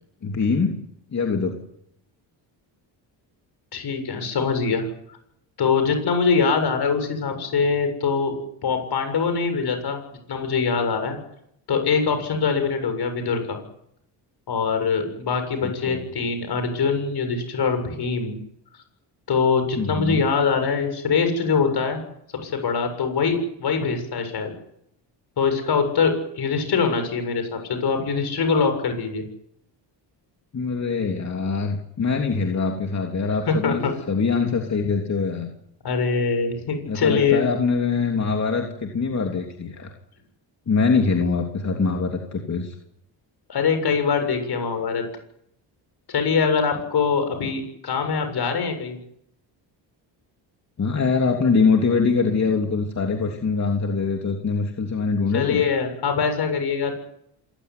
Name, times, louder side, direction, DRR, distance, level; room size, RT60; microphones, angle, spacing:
voice 1, 0.2-0.8 1.1-1.6 15.6-16.0 19.7-20.2 30.5-35.5 36.9-39.9 40.7-42.7 50.8-55.6, left 4 dB, 40° left, 2 dB, 3.2 m, -23 dB
voice 2, 3.7-4.8 5.6-8.3 8.6-11.2 11.7-13.6 14.5-18.4 19.3-22.0 22.4-24.5 25.4-29.2 33.5-33.9 35.8-37.4 43.5-45.0 46.1-49.0 55.3-56.9, left 5 dB, 60° left, 7 dB, 7.4 m, -23 dB
27.0 x 16.5 x 9.8 m, 0.76 s
cardioid pair, 90°, 44 cm